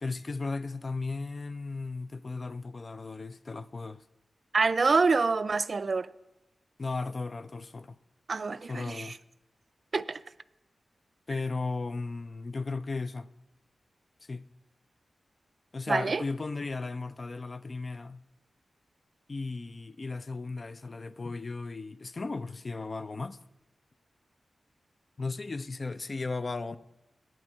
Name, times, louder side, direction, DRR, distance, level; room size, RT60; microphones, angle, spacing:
voice 1, 0.0-4.0 6.8-8.0 8.7-9.2 11.3-13.3 14.3-14.4 15.7-18.2 19.3-23.4 25.2-26.8, left 3 dB, 40° left, 0.4 m, -35 dB
voice 2, 4.5-6.1 8.3-9.2 9.9-10.2 15.9-16.2, right 4 dB, 50° right, 0.3 m, -26 dB
9.2 x 6.1 x 8.2 m
wide cardioid pair, 120°, 0 cm